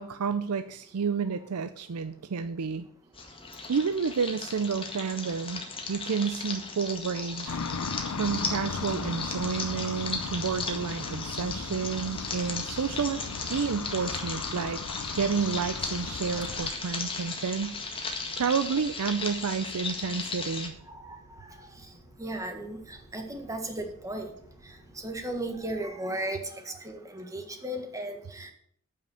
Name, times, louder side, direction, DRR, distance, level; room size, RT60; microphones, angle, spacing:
voice 1, 0.0-2.9 3.7-5.6 5.9-7.6 8.2-13.2 13.5-14.8 15.1-17.8 18.4-20.7, right 5 dB, 85° right, 11 dB, 0.5 m, -30 dB
sound 1, 3.1-20.7, left 3 dB, 25° left, 1.8 m, -36 dB
sound 2, 7.5-16.7, left 5 dB, 80° left, 0.7 m, -37 dB
sound 3, 9.7-25.8, right 1 dB, 50° left, 2.6 m, -56 dB
voice 2, 20.9-21.5 22.2-24.3 25.0-26.4 26.6-28.5, right 1 dB, 15° right, 5 dB, 1.6 m, -35 dB
9.2 x 5.8 x 8.4 m, 0.65 s
head